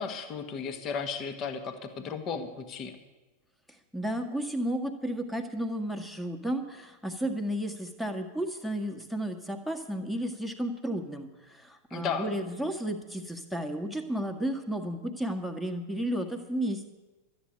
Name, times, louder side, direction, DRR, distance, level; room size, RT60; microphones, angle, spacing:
voice 1, 0.0-3.0 11.9-12.3, left 6 dB, 35° left, 6 dB, 1.5 m, -34 dB
voice 2, 3.9-16.9, right 1 dB, 5° left, 5 dB, 1.5 m, -33 dB
12.5 x 8.7 x 8.8 m, 1.2 s
figure-of-eight pair, 90°, 0 cm